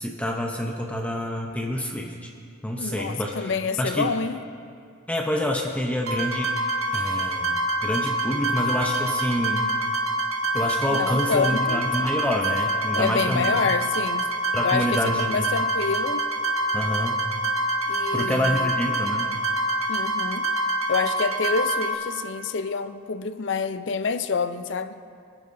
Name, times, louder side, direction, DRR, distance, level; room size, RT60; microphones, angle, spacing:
voice 1, 0.0-2.3 2.6-3.5 3.8-4.1 5.1-6.6 6.9-9.7 10.5-13.6 14.5-15.5 16.7-17.3 18.1-19.4, equal, 5° left, 0.6 m, -27 dB
voice 2, 2.8-4.4 10.9-11.8 12.9-14.3 14.6-16.3 17.9-18.7 19.9-20.5 20.9-24.9, left 5 dB, 60° left, 0.5 m, -27 dB
sound 1, 6.1-21.9, right 1 dB, 85° right, 1.6 m, -26 dB
24.5 x 10.5 x 2.6 m
head